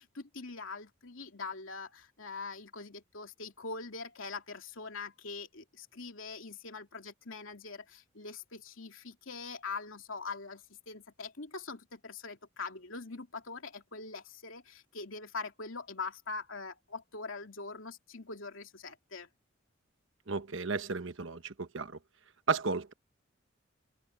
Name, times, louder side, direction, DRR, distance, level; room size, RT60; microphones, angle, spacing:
voice 1, 0.0-19.3, left 4 dB, 80° left, 2.8 m, -43 dB
voice 2, 20.3-22.0 22.5-22.9, right 4 dB, 70° right, 1.2 m, -33 dB
head